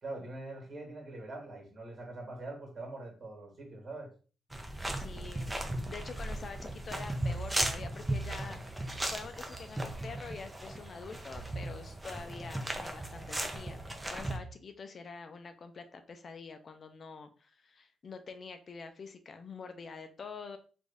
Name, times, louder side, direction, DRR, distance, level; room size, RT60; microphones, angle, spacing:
voice 1, 0.0-4.1, right 2 dB, 45° right, 0 dB, 1.9 m, -43 dB
sound 1, 4.5-14.4, right 1 dB, 15° right, 0.7 m, -37 dB
voice 2, 5.0-5.5 5.9-8.6 9.1-20.6, left 4 dB, 50° left, 8 dB, 0.5 m, -46 dB
3.2 x 2.5 x 3.5 m, 0.37 s
supercardioid pair, 65°, 0 cm